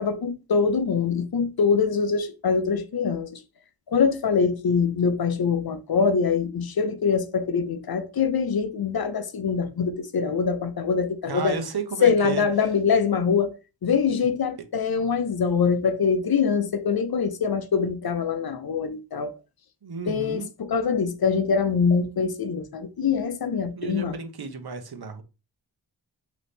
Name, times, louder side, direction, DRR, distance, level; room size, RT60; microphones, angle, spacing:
voice 1, 0.0-3.4 3.9-11.6 12.0-19.3 20.1-24.1, left 6 dB, 60° left, 0.6 m, -24 dB
voice 2, 11.2-12.4 19.8-20.5 23.7-25.2, right 5 dB, 60° right, 0.9 m, -32 dB
3.9 x 3.0 x 3.4 m
wide cardioid pair, 75°, 42 cm